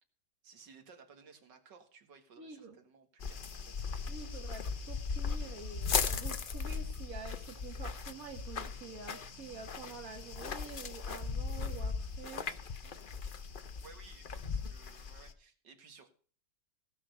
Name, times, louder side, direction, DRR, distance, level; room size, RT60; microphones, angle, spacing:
voice 1, 0.4-4.4 12.8-13.4 13.8-16.1, right 5 dB, 80° right, 6 dB, 2.3 m, -58 dB
voice 2, 2.4-2.8 4.1-12.4, right 4 dB, 55° right, 2 dB, 2.0 m, -48 dB
sound 1, 3.2-15.3, left 5 dB, 45° left, 0.7 m, -38 dB
sound 2, 5.5-10.8, right 11 dB, 30° right, 1.0 m, -62 dB
17.0 x 6.1 x 6.5 m, 0.43 s
omnidirectional pair, 1.9 m